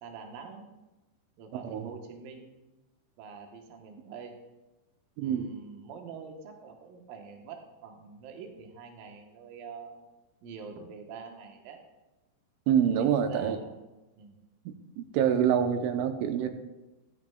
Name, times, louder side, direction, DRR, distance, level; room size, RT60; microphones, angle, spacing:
voice 1, 0.0-0.6 1.4-2.5 3.2-4.4 5.2-10.1 10.4-11.8 13.0-13.7 14.2-14.4, right 5 dB, 70° right, 3 dB, 2.3 m, -45 dB
voice 2, 1.5-1.9 5.2-5.5 12.7-13.6 14.7-16.5, right 8 dB, 90° right, 7 dB, 3.1 m, -26 dB
14.5 x 11.0 x 2.3 m, 1.0 s
omnidirectional pair, 5.4 m